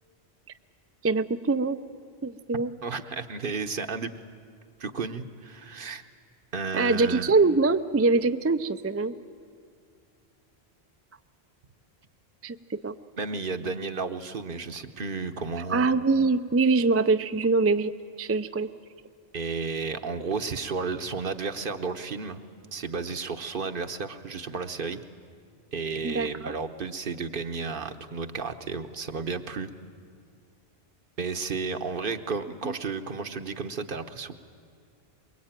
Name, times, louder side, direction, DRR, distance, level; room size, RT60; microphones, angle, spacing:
voice 1, 1.0-1.8 2.2-2.7 6.7-9.1 12.4-12.9 15.7-17.9 18.2-18.7 26.0-26.5 32.6-32.7, right 3 dB, 20° right, 10 dB, 0.4 m, -24 dB
voice 2, 2.8-4.1 4.8-6.0 6.5-7.3 13.2-15.9 19.3-22.4 22.7-25.0 25.7-29.7 31.2-34.3, right 4 dB, 60° right, 9 dB, 1.2 m, -32 dB
23.5 x 22.0 x 9.0 m, 2.2 s
omnidirectional pair, 1.1 m